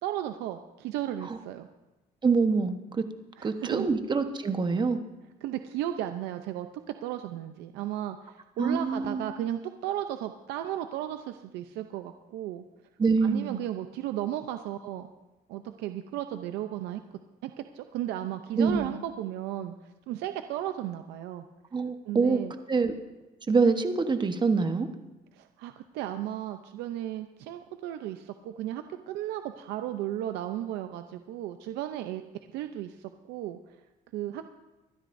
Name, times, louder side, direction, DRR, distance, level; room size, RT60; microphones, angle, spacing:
voice 1, 0.0-1.7 3.4-3.9 5.4-6.7 7.0-12.6 13.2-15.1 15.5-17.0 17.4-21.5 22.1-22.5 25.3-32.2 32.5-33.8 34.1-34.5, right 12 dB, 90° right, 8 dB, 0.7 m, -35 dB
voice 2, 2.2-3.1 3.4-5.0 8.6-9.2 13.0-13.6 18.6-18.9 21.7-22.4 22.7-22.9 23.5-24.9, right 4 dB, 25° right, 8 dB, 1.1 m, -25 dB
25.0 x 12.5 x 2.7 m, 1.1 s
cardioid pair, 110°, 17 cm